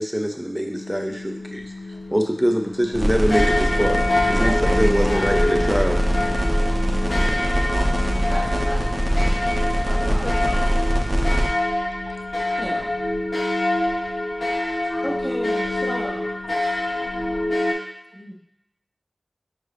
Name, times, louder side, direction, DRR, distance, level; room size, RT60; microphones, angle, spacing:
voice 1, 0.0-1.7 2.1-4.0 4.3-6.0 7.2-7.5, equal, 5° right, 4 dB, 0.5 m, -23 dB
sound 1, 0.7-17.7, left 1 dB, 90° left, 1.0 m, -26 dB
sound 2, 2.9-11.5, equal, 45° right, 0.7 m, -22 dB
voice 2, 4.3-5.3 8.3-8.9 9.9-10.7 12.4-12.9 14.4-14.5 15.0-16.3 18.1-18.3, equal, 30° left, -4 dB, 0.9 m, -33 dB
voice 3, 10.0-10.9 12.1-12.2 14.8-15.1 15.9-16.0 16.8-17.5, left 2 dB, 65° left, 5 dB, 0.4 m, -39 dB
5.3 x 2.5 x 3.3 m, 0.82 s
wide cardioid pair, 55°, 0 cm